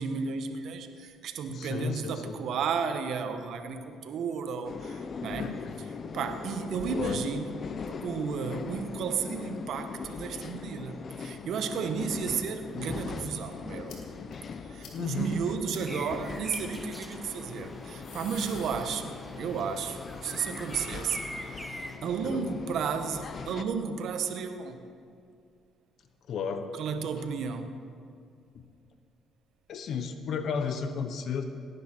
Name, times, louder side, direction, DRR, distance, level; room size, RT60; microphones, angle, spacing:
voice 1, 0.0-5.5 6.1-7.5 7.9-14.0 14.6-24.8 26.8-27.7, right 6 dB, 70° right, 8 dB, 1.1 m, -33 dB
voice 2, 1.5-2.4 5.4-5.8 6.9-7.2 14.9-15.3 22.2-22.6 26.3-26.7 28.5-28.6 29.7-31.4, left 6 dB, 65° left, 8 dB, 0.9 m, -33 dB
sound 1, 4.6-23.6, left 5 dB, 45° left, 0.6 m, -40 dB
sound 2, 13.9-14.0 14.3-14.4 14.8-15.0 15.3-15.4 15.7-15.8 16.5-16.6 17.7-19.4 19.7-21.9, left 5 dB, 80° left, 2.2 m, -49 dB
sound 3, 15.8-22.0, equal, 5° left, 1.1 m, -44 dB
17.5 x 10.0 x 4.5 m, 2.4 s
supercardioid pair, 75°, 0 cm